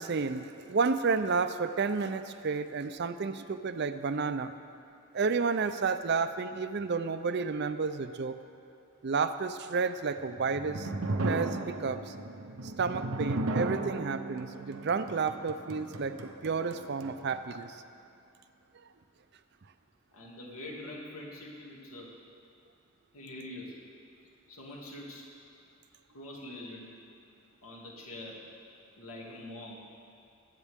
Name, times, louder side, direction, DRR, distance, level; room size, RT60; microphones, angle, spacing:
voice 1, 0.0-4.6 5.1-8.3 9.0-10.9 11.3-12.1 12.6-17.8, right 4 dB, 50° right, 10 dB, 0.5 m, -31 dB
sound 1, 10.2-17.4, right 2 dB, 80° right, 0.8 m, -35 dB
voice 2, 20.1-22.1 23.1-23.8 24.5-25.3 26.1-26.9 27.6-28.4 29.0-29.8, left 1 dB, 85° left, -3 dB, 2.4 m, -44 dB
22.0 x 8.4 x 3.6 m, 2.6 s
head